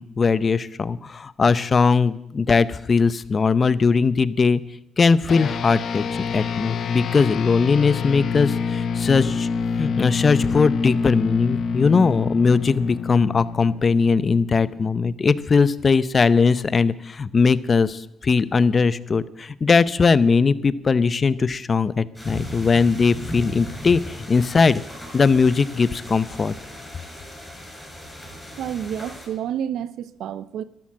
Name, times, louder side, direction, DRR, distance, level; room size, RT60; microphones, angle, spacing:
voice 1, 0.0-4.6 5.0-9.5 9.8-24.8 25.1-26.5, left 5 dB, 35° left, 17 dB, 0.7 m, -20 dB
sound 1, 5.3-15.0, left 5 dB, 60° left, 1.0 m, -27 dB
sound 2, 22.1-29.3, equal, 5° left, 6.9 m, -37 dB
voice 2, 28.6-30.6, right 9 dB, 75° right, 17 dB, 0.6 m, -29 dB
13.5 x 11.5 x 7.4 m, 0.83 s
cardioid pair, 90°, 0 cm